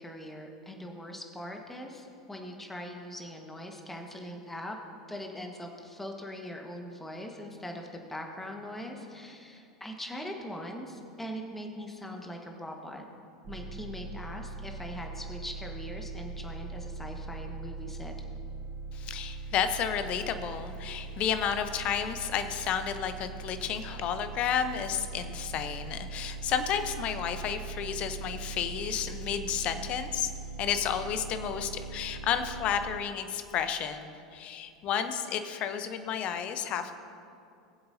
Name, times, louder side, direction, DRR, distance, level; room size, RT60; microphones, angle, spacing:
voice 1, 0.0-4.8 5.1-13.0 13.5-18.1, equal, 10° left, 2 dB, 1.5 m, -41 dB
sound 1, 13.4-33.0, right 3 dB, 45° right, 0.8 m, -41 dB
voice 2, 18.9-30.3 30.6-37.0, left 8 dB, 40° left, 9 dB, 0.9 m, -32 dB
19.0 x 7.8 x 2.8 m, 2.5 s
figure-of-eight pair, 85°, 3 cm